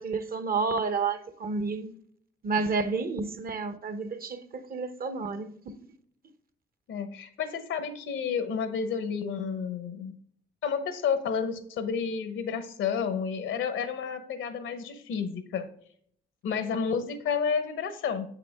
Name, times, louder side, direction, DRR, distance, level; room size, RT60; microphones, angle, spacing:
voice 1, 0.0-1.9 2.4-5.7, right 4 dB, 50° right, 0.9 m, -30 dB
voice 2, 6.9-10.1 10.6-15.7 16.4-18.3, left 6 dB, 75° left, 1.0 m, -30 dB
7.5 x 5.9 x 3.5 m
cardioid pair, 90°, 20 cm